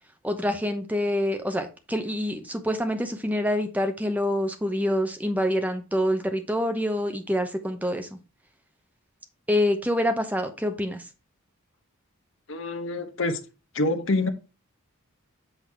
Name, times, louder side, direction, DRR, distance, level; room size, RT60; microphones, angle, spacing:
voice 1, 0.2-8.2 9.5-11.1, left 1 dB, 5° right, 0.8 m, -26 dB
voice 2, 12.5-13.4 13.7-14.3, left 2 dB, 60° left, 1.0 m, -26 dB
8.0 x 4.0 x 4.5 m
head